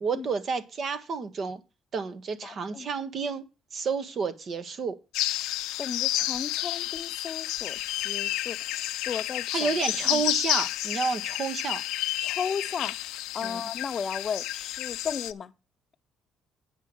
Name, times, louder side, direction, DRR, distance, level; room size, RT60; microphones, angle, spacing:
voice 1, 0.0-1.6 1.9-3.4 3.7-4.9 9.5-11.8 13.4-13.6, right 5 dB, 45° right, 1.2 m, -30 dB
voice 2, 2.4-2.9 5.8-8.6 9.0-9.7 10.0-10.2 12.2-13.0 13.3-15.5, left 6 dB, 40° left, 0.7 m, -35 dB
sound 1, 5.1-15.3, left 16 dB, 90° left, 0.6 m, -30 dB
8.8 x 5.6 x 6.2 m
cardioid pair, 105°, 0 cm